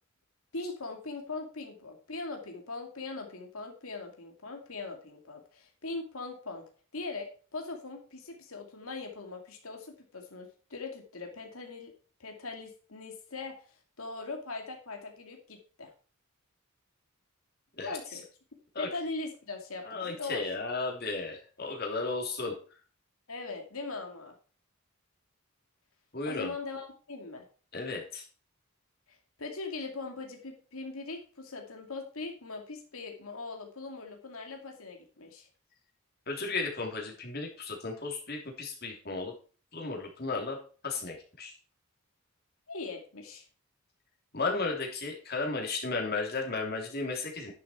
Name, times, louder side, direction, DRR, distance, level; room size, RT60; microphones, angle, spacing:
voice 1, 0.5-6.6 6.9-11.9 12.2-13.6 14.0-15.9 17.8-18.2 18.8-20.5 23.3-24.3 26.2-27.5 29.1-35.5 42.7-43.4, left 3 dB, 80° left, 3 dB, 2.4 m, -40 dB
voice 2, 19.8-22.5 26.1-26.5 27.7-28.2 36.3-39.3 39.7-40.6 40.8-41.5 44.3-47.5, left 3 dB, 50° left, 1 dB, 3.2 m, -34 dB
10.5 x 7.4 x 4.4 m, 0.39 s
head